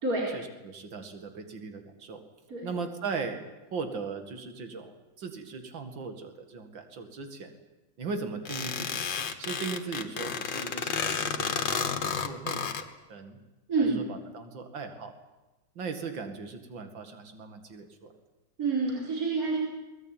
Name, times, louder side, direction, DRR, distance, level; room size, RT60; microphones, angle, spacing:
voice 1, 0.3-2.2 2.6-3.4 3.7-7.5 8.0-9.1 9.4-13.4 13.8-15.2 15.8-18.1, right 4 dB, 80° right, 7 dB, 2.8 m, -38 dB
sound 1, 8.5-12.8, left 6 dB, 75° left, 2.2 m, -31 dB
voice 2, 18.6-19.6, right 3 dB, 45° right, -3 dB, 4.7 m, -27 dB
23.5 x 19.0 x 9.0 m, 1.1 s
omnidirectional pair, 2.0 m